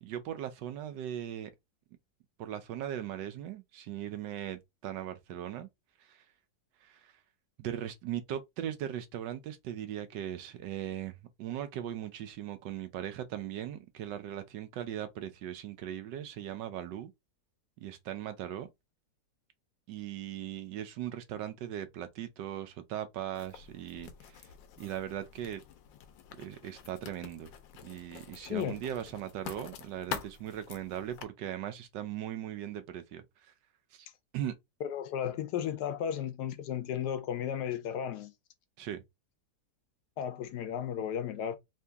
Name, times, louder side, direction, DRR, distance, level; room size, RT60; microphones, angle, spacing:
voice 1, 0.0-1.5 2.4-5.7 6.0-6.2 6.8-7.1 7.6-17.1 17.8-18.7 19.9-24.4 24.8-25.6 26.4-27.5 27.8-33.5 33.9-34.1 34.3-34.5 38.8-39.0, right 11 dB, 75° right, 1.3 m, -39 dB
Writing, 23.3-31.2, left 8 dB, 85° left, 1.4 m, -46 dB
voice 2, 28.4-28.8 34.8-38.3 40.2-41.6, left 9 dB, 70° left, 1.1 m, -34 dB
3.7 x 2.7 x 3.4 m
omnidirectional pair, 2.0 m